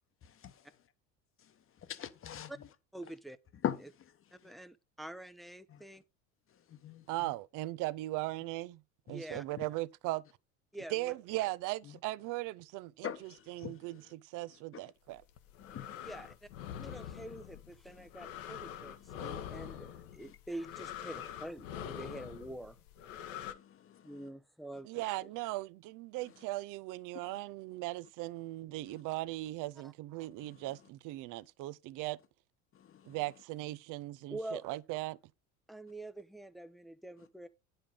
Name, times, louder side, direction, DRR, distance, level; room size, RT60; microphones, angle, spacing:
voice 1, 0.2-0.7 1.4-1.5 1.8-2.5 3.6-3.8 4.4-4.5 5.7-5.8 6.5-7.3 9.1-9.2 9.6-9.7 11.8-12.0 13.0-14.1 15.6-16.1 16.9-17.0 17.9-18.1 19.0-19.7 20.2-20.4 23.1-24.2 26.2-26.3 27.2-27.4 28.9-29.0 30.4-30.7 32.7-33.2, left 9 dB, 30° left, 1.1 m, -44 dB
voice 2, 2.9-3.4 4.3-6.0 9.1-9.4 10.7-11.1 16.0-16.5 16.8-22.8 24.0-25.3 29.8-29.9 34.3-34.6 35.7-37.5, right 1 dB, ahead, 0.7 m, -46 dB
voice 3, 7.1-8.8 9.1-10.2 10.9-15.2 24.8-32.2 33.1-35.2, right 18 dB, 50° right, 0.7 m, -38 dB
sound 1, 15.2-23.5, left 10 dB, 70° left, 1.3 m, -45 dB
9.9 x 5.3 x 5.3 m
hypercardioid pair, 80°, 40 cm